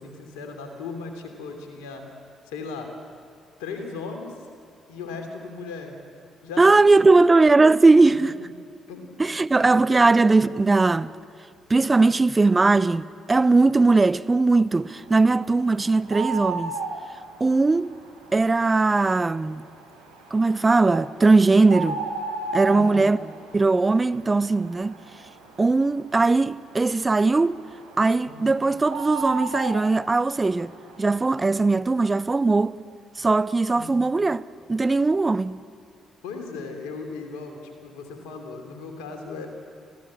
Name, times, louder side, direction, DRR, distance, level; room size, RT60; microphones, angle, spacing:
voice 1, 0.0-2.0 2.5-2.9 3.6-4.3 4.9-6.0 6.4-7.2 7.9-8.5 8.9-9.3 9.6-10.1 22.6-23.1 28.2-28.5 33.8-34.0 36.2-39.5, left 4 dB, 75° left, 2.9 m, -37 dB
voice 2, 6.6-8.3 9.2-11.1 11.7-16.7 17.4-17.9 18.3-19.7 20.3-22.0 22.5-23.2 23.5-25.0 25.6-27.6 28.0-30.7 31.0-32.8 33.2-35.6, right 3 dB, 25° right, 0.7 m, -19 dB
sound 1, 14.8-31.1, right 4 dB, 85° right, 2.6 m, -36 dB
28.5 x 15.5 x 8.7 m
figure-of-eight pair, 45°, 0 cm